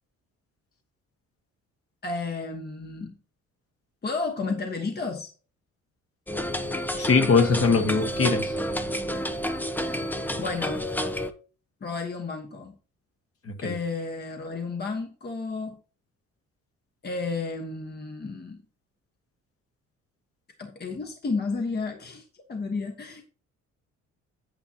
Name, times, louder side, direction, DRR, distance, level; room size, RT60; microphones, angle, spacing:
voice 1, 2.0-3.2 4.0-5.3 10.4-10.9 11.8-12.8 13.6-15.8 17.0-18.6 20.6-23.2, left 4 dB, 35° left, 1.3 m, -32 dB
sound 1, 6.3-11.3, equal, 5° left, 0.7 m, -30 dB
voice 2, 7.0-8.5 13.5-13.7, left 4 dB, 50° left, 1.7 m, -22 dB
8.9 x 8.1 x 2.9 m
cardioid pair, 90°, 30 cm